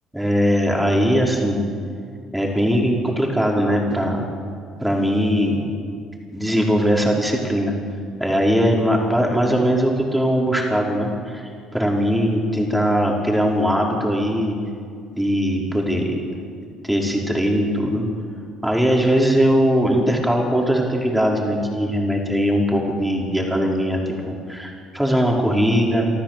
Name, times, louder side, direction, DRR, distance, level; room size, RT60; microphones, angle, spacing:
voice 1, 0.1-1.6 2.3-4.3 4.8-5.7 6.3-7.7 8.2-14.6 15.1-16.2 16.8-18.1 18.6-24.0 24.3-26.1, equal, 5° right, -1 dB, 4.9 m, -20 dB
25.5 x 13.5 x 7.7 m, 2.2 s
supercardioid pair, 75°, 0 cm